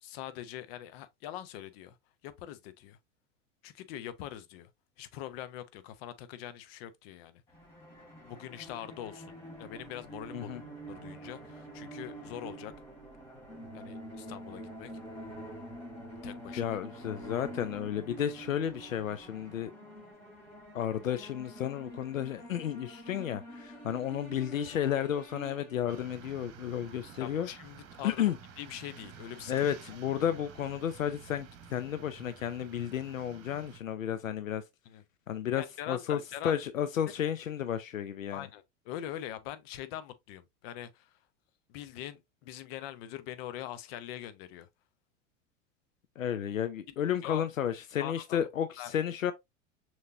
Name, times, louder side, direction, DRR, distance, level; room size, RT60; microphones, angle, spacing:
voice 1, 0.0-2.0 2.2-3.0 3.6-4.7 5.0-7.4 8.2-10.6 10.9-12.7 13.7-14.9 16.2-16.7 27.2-28.2 28.6-29.5 34.9-35.0 35.6-36.6 38.3-41.2 41.7-44.7 47.2-47.5 48.0-48.5 48.8-48.9, left 12 dB, 50° left, 0.8 m, -43 dB
sound 1, 7.5-26.2, right 1 dB, 15° left, 3.4 m, -47 dB
voice 2, 16.6-19.7 20.7-27.5 28.0-28.4 29.5-34.6 35.3-38.5 46.2-49.3, left 10 dB, 80° left, 0.6 m, -32 dB
sound 2, 25.9-33.8, right 7 dB, 35° right, 1.3 m, -51 dB
6.5 x 3.1 x 2.5 m
figure-of-eight pair, 85°, 39 cm